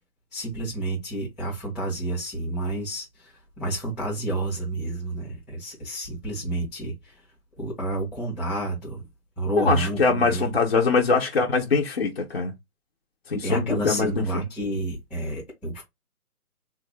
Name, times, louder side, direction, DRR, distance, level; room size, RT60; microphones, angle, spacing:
voice 1, 0.3-3.3 3.6-6.9 7.6-9.0 9.4-10.5 13.4-15.8, right 2 dB, 5° left, 0.6 m, -29 dB
voice 2, 9.6-12.5 13.3-14.4, left 4 dB, 40° left, 0.5 m, -23 dB
3.7 x 2.3 x 3.1 m
hypercardioid pair, 155°, 46 cm